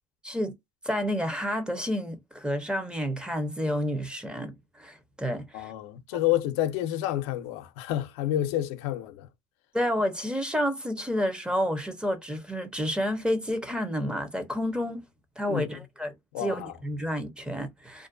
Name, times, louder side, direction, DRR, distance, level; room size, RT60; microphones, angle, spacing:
voice 1, 0.8-5.7 9.7-15.0 15.4-18.1, equal, 5° right, 0.7 m, -30 dB
voice 2, 5.5-9.3 15.5-15.8 16.3-16.8, left 13 dB, 90° left, 0.5 m, -29 dB
2.4 x 2.2 x 2.5 m
supercardioid pair, 95°, 14 cm